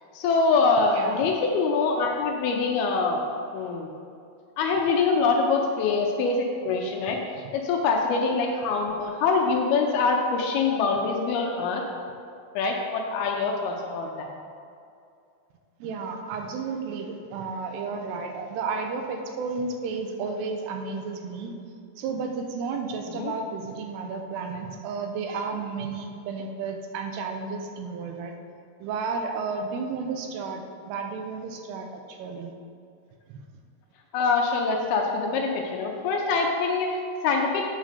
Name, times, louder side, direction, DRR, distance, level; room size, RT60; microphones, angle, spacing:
voice 1, 0.1-3.2 3.5-3.9 4.6-11.8 12.6-14.3 23.1-23.3 34.1-37.6, left 4 dB, 80° left, 1 dB, 2.4 m, -24 dB
voice 2, 0.9-1.3 15.8-21.5 22.0-28.4 28.8-32.5 33.3-33.4, right 4 dB, 80° right, 4 dB, 2.8 m, -32 dB
9.0 x 3.8 x 6.6 m, 2.5 s
omnidirectional pair, 4.8 m